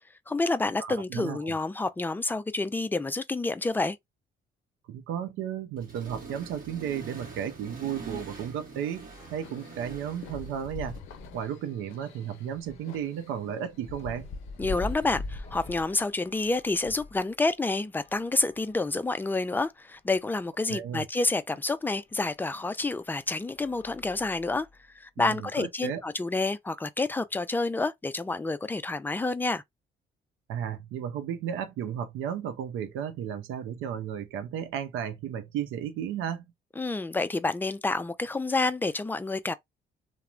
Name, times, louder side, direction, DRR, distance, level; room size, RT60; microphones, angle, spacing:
voice 1, 0.3-4.0 14.6-24.7 25.0-29.6 36.8-39.5, left 3 dB, 10° left, 0.3 m, -29 dB
voice 2, 0.8-1.6 4.9-11.0 11.3-14.3 20.7-21.1 25.2-26.0 30.5-36.4, right 9 dB, 90° right, 0.6 m, -34 dB
Accelerating revving vroom, 5.8-11.0, right 4 dB, 45° right, 1.0 m, -44 dB
sound 1, 7.7-17.2 17.9-19.3 20.0-20.1 20.3-20.4 22.1-22.2 22.8-23.1 23.5-24.8, left 2 dB, 35° left, 0.8 m, -43 dB
sound 2, 9.4-15.6, left 10 dB, 90° left, 0.5 m, -52 dB
3.0 x 2.1 x 2.4 m
cardioid pair, 90°, 20 cm